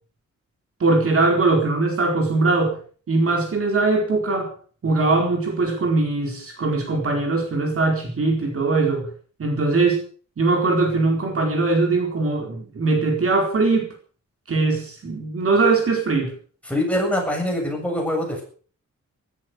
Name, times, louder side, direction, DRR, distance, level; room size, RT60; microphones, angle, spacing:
voice 1, 0.8-2.8 3.1-4.5 4.8-9.1 9.4-10.0 10.4-13.9 14.5-16.3, right 3 dB, 50° right, 3 dB, 4.5 m, -21 dB
voice 2, 16.7-18.4, left 1 dB, 5° left, 0 dB, 7.7 m, -24 dB
16.0 x 13.5 x 6.5 m, 0.43 s
wide cardioid pair, 165°, 30 cm